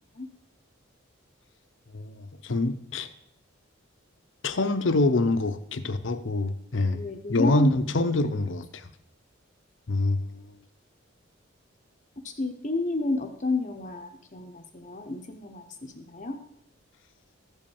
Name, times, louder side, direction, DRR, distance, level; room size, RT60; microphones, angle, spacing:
voice 1, 1.9-3.1 4.4-7.0 7.3-8.8 9.9-10.5, left 2 dB, 65° left, 11 dB, 0.8 m, -26 dB
voice 2, 6.9-8.1 12.2-16.4, left 2 dB, 35° left, 4 dB, 0.9 m, -31 dB
14.0 x 5.3 x 7.2 m, 0.74 s
head